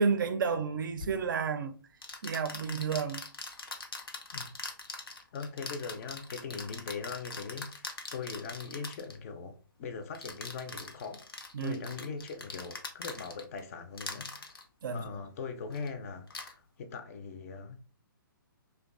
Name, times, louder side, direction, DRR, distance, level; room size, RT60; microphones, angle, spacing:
voice 1, 0.0-1.7 2.2-3.2 11.5-11.8 14.8-15.1, right 5 dB, 65° right, 0.4 m, -30 dB
sound 1, 1.0-1.1 2.0-9.2 10.1-13.6 13.9-14.6 15.7-15.9 16.3-16.5, left 3 dB, 90° left, 0.6 m, -42 dB
voice 2, 5.3-7.9 8.1-11.3 11.6-14.6 14.9-17.8, left 5 dB, 40° left, 0.4 m, -40 dB
2.5 x 2.2 x 2.4 m
hypercardioid pair, 135°, 12 cm